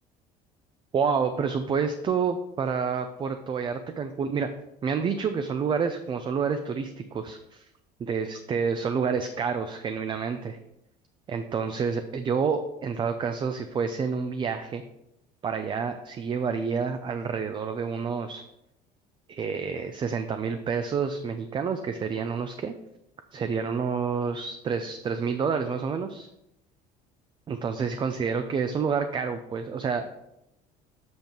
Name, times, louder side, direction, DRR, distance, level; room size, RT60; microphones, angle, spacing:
voice 1, 0.9-4.5 4.8-7.6 8.0-10.6 11.3-14.8 15.4-18.4 19.3-22.7 23.3-26.3 27.5-30.1, right 6 dB, 30° right, 8 dB, 0.5 m, -28 dB
7.9 x 5.2 x 4.5 m, 0.86 s
cardioid pair, 120°, 16 cm